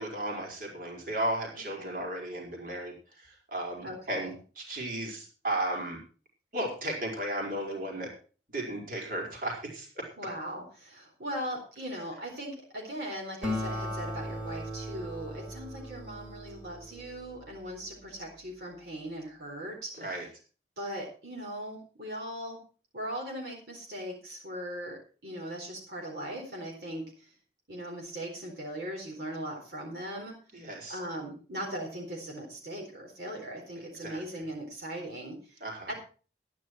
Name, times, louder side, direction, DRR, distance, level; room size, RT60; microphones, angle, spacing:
voice 1, 0.0-6.0 6.5-8.1 8.5-10.1 20.0-20.2 30.5-31.0 34.0-34.2 35.6-35.9, right 1 dB, 50° right, -1 dB, 4.7 m, -35 dB
voice 2, 1.5-1.9 3.8-4.3 10.2-20.3 20.8-22.6 22.9-27.3 27.7-35.6 35.9-36.0, equal, 65° right, -1 dB, 4.2 m, -39 dB
Acoustic guitar, 13.4-18.3, left 1 dB, 5° right, 3.4 m, -38 dB
13.5 x 11.0 x 4.6 m, 0.38 s
head